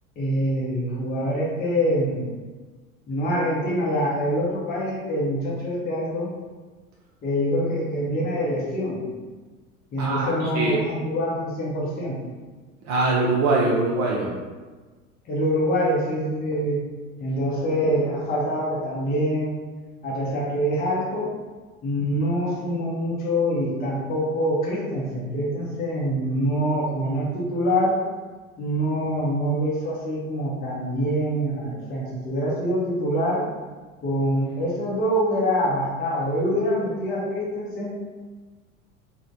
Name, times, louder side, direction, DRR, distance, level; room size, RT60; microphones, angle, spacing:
voice 1, 0.2-2.3 3.1-6.3 7.2-9.1 9.9-12.3 15.2-16.8 17.2-19.5 20.0-21.3 21.8-28.0 28.6-33.4 34.0-37.9, equal, 20° left, -5 dB, 0.7 m, -25 dB
voice 2, 10.0-10.8 12.8-14.3, right 2 dB, 35° right, -4 dB, 0.4 m, -22 dB
3.0 x 2.1 x 2.6 m, 1.3 s
figure-of-eight pair, 80°, 43 cm